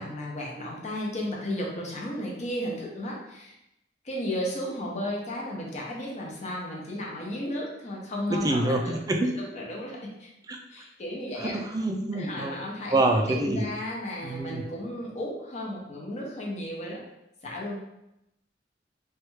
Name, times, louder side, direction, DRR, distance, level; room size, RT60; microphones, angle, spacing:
voice 1, 0.0-3.5 4.0-9.0 9.4-10.3 10.7-11.6 12.1-13.0 13.3-17.0 17.4-17.8, left 1 dB, 40° left, -2 dB, 0.7 m, -34 dB
voice 2, 8.3-9.3 10.5-10.6 11.4-12.6 12.9-13.7 14.2-14.6, right 2 dB, 20° right, 2 dB, 0.3 m, -26 dB
3.1 x 2.3 x 3.0 m, 0.86 s
head